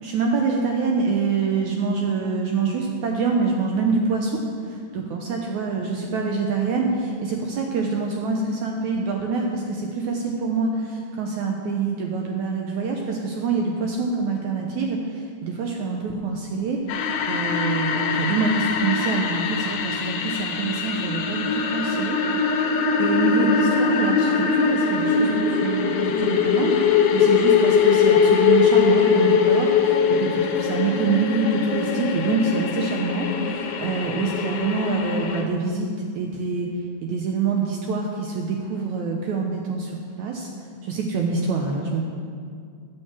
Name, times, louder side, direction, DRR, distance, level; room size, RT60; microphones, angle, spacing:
voice 1, 0.0-22.2 22.6-39.9 40.2-40.5 40.8-42.1, right 4 dB, 75° right, 1 dB, 1.7 m, -26 dB
sound 1, 16.9-35.4, left 6 dB, 90° left, 2.8 m, -22 dB
9.0 x 7.8 x 7.4 m, 2.2 s
omnidirectional pair, 4.2 m